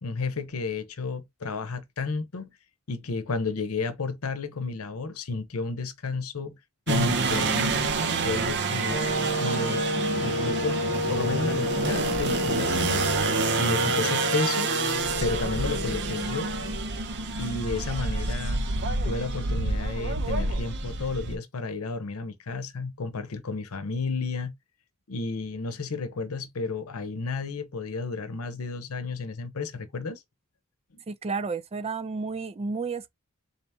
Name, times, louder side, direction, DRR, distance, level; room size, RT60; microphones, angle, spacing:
voice 1, 0.0-2.5 2.9-6.6 6.9-7.9 8.2-9.0 9.4-9.8 10.2-13.0 13.6-14.7 15.2-16.5 17.4-18.6 19.0-24.5 25.1-30.2 30.9-31.0, left 3 dB, 85° left, 0.8 m, -32 dB
sound 1, 6.9-21.4, right 4 dB, 55° right, 0.7 m, -28 dB
sound 2, 8.9-16.9, left 2 dB, 50° left, 0.6 m, -30 dB
voice 2, 31.1-33.1, right 4 dB, 30° right, 0.4 m, -31 dB
3.9 x 2.8 x 3.4 m
head